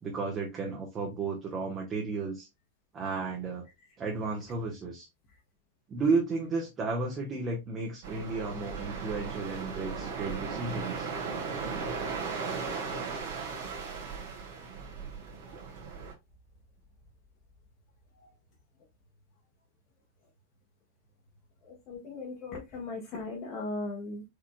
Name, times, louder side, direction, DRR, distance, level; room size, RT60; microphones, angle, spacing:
voice 1, 0.0-2.5 2.9-3.7 4.0-5.1 5.9-11.1, right 4 dB, 25° right, 0 dB, 1.2 m, -33 dB
sound 1, 8.0-16.1, right 5 dB, 55° right, 1.7 m, -37 dB
voice 2, 12.9-13.4 14.1-14.2 18.1-18.3 21.6-24.2, left 3 dB, 40° left, -2 dB, 1.3 m, -39 dB
4.9 x 4.2 x 2.2 m, 0.21 s
figure-of-eight pair, 90°, 0 cm